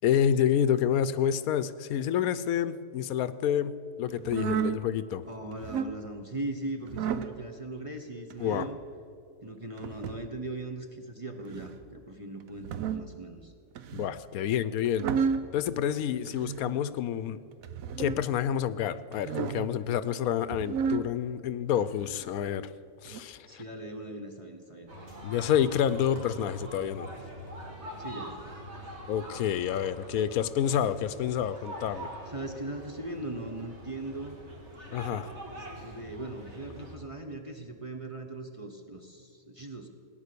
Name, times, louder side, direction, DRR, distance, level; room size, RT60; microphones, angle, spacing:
voice 1, 0.0-5.2 8.4-8.7 13.9-15.1 15.5-17.4 18.0-22.7 23.0-23.6 25.2-27.1 29.1-32.1 34.9-35.3, left 9 dB, 80° left, 15 dB, 1.0 m, -28 dB
sound 1, 4.2-4.8 5.5-6.0 6.9-7.3 8.3-8.7 9.8-10.3 11.4-11.8 12.5-13.1 13.8-14.2 14.8-15.5 16.3-16.8 17.6-18.2 19.1-19.7 20.4-21.1 21.8-22.3 23.1-23.2, right 6 dB, 70° right, 1.1 m, -32 dB
voice 2, 5.3-8.8 9.4-13.5 23.5-24.9 28.0-28.5 32.3-34.3 35.5-39.9, right 2 dB, 25° right, 4 dB, 0.8 m, -39 dB
sound 2, 24.9-36.9, equal, 50° right, 2.6 m, -44 dB
17.5 x 9.6 x 6.8 m, 2.5 s
omnidirectional pair, 1.5 m